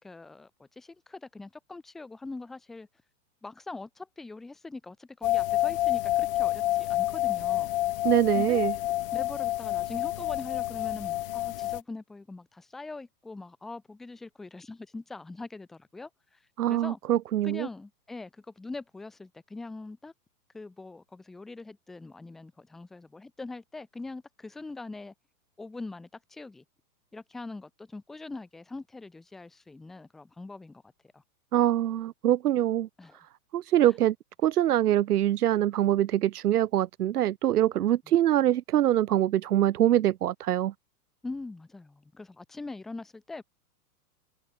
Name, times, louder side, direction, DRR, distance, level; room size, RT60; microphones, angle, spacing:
voice 1, 0.0-2.9 3.4-7.7 8.3-8.7 9.1-16.4 16.7-17.0 17.4-20.1 20.5-25.1 25.6-26.6 27.1-31.2 33.0-33.2 41.2-43.4, left 3 dB, ahead, 0.4 m, -42 dB
sound 1, 5.2-11.8, left 16 dB, 35° left, 0.9 m, -28 dB
voice 2, 8.0-8.7 16.6-17.7 31.5-32.9 33.5-34.1 34.4-40.7, right 12 dB, 80° right, 1.1 m, -24 dB
hypercardioid pair, 165°, 45 cm